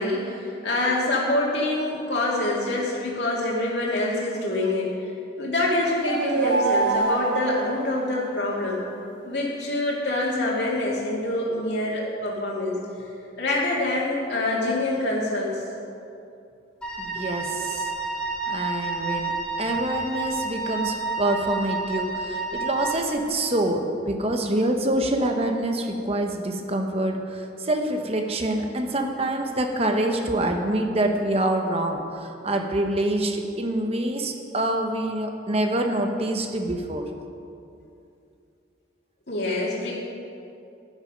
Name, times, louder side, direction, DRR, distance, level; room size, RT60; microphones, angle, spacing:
voice 1, 0.0-4.9 5.4-8.8 9.2-12.8 13.4-15.6 39.3-39.9, left 2 dB, 65° left, -5 dB, 2.3 m, -25 dB
sound 1, 5.7-8.6, right 3 dB, 85° right, 1.0 m, -26 dB
Wind instrument woodwind instrument, 16.8-23.2, right 4 dB, 5° left, 1.7 m, -30 dB
voice 2, 17.0-17.9 18.5-37.1, right 1 dB, 35° right, 4 dB, 1.1 m, -26 dB
12.0 x 11.0 x 5.2 m, 2.6 s
head